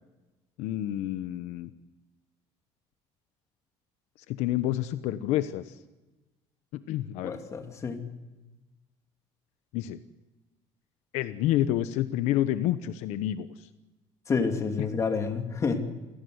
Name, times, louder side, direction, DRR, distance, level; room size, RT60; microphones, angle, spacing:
voice 1, 0.6-1.7 4.3-5.7 6.7-7.4 9.7-10.0 11.1-13.5, left 13 dB, 75° left, 12 dB, 1.1 m, -29 dB
voice 2, 7.2-8.0 14.3-15.8, left 5 dB, 25° left, 5 dB, 2.8 m, -29 dB
28.0 x 18.0 x 8.0 m, 1.1 s
cardioid pair, 150°, 12 cm